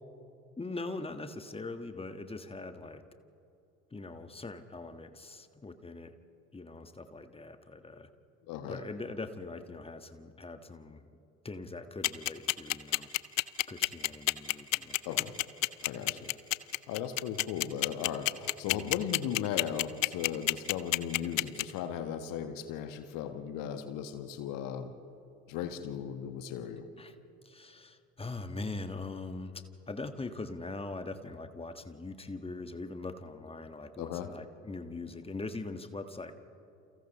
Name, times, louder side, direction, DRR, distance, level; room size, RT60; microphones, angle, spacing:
voice 1, 0.6-3.0 3.9-6.1 6.5-8.1 8.7-11.1 11.4-13.1 13.7-15.3 16.0-16.4 18.7-19.0 27.0-27.1 27.4-36.3, left 3 dB, 15° left, 8 dB, 1.5 m, -42 dB
voice 2, 8.4-8.8 15.0-15.3 15.8-16.3 16.9-24.9 25.5-26.9 34.0-34.3, left 9 dB, 55° left, 8 dB, 1.4 m, -37 dB
sound 1, 12.0-21.6, left 16 dB, 75° left, 0.6 m, -27 dB
29.5 x 29.0 x 3.1 m, 2.8 s
figure-of-eight pair, 55°, 39 cm